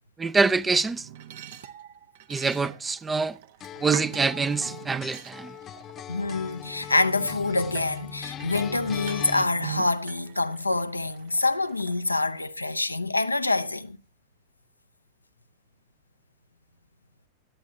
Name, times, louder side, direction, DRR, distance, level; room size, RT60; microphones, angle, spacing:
voice 1, 0.2-1.1 2.3-3.4 3.8-5.6, right 4 dB, 15° right, 0.4 m, -25 dB
sound 1, 0.9-6.5 7.0-12.5, right 11 dB, 55° right, 0.7 m, -43 dB
sound 2, 3.6-9.5, left 9 dB, 30° left, 0.8 m, -40 dB
voice 2, 6.1-14.0, left 2 dB, 85° left, 0.5 m, -26 dB
16.5 x 10.5 x 2.7 m
figure-of-eight pair, 90°, 0 cm